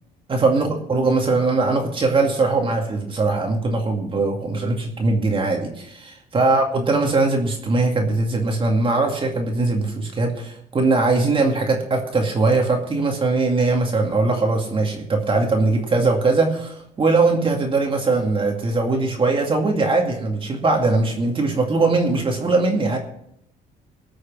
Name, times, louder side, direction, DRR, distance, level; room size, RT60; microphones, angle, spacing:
voice 1, 0.3-23.0, right 3 dB, 30° right, 1 dB, 2.3 m, -21 dB
19.0 x 6.5 x 6.1 m, 0.74 s
cardioid pair, 110°, 17 cm